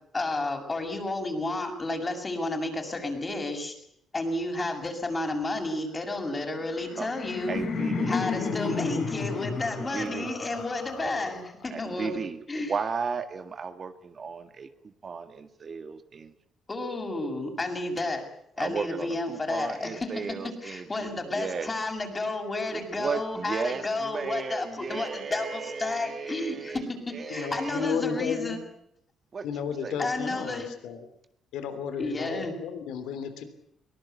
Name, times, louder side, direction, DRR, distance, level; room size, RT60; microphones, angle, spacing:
voice 1, 0.1-3.8 4.1-7.6 8.1-12.2 12.5-12.7 16.7-18.2 18.6-28.6 30.0-30.7 32.0-32.5, left 2 dB, 25° left, 3 dB, 7.1 m, -31 dB
Laughter, 6.6-11.6, left 4 dB, 65° left, 6.7 m, -32 dB
voice 2, 7.5-8.2 9.8-10.3 11.0-11.1 11.7-16.3 18.6-21.7 22.7-28.0 29.3-30.0, right 5 dB, 45° right, 8 dB, 1.9 m, -35 dB
voice 3, 27.3-28.6 29.4-31.1 31.5-33.4, left 6 dB, 90° left, 10 dB, 3.2 m, -33 dB
23.0 x 19.0 x 8.4 m, 0.76 s
cardioid pair, 90°, 0 cm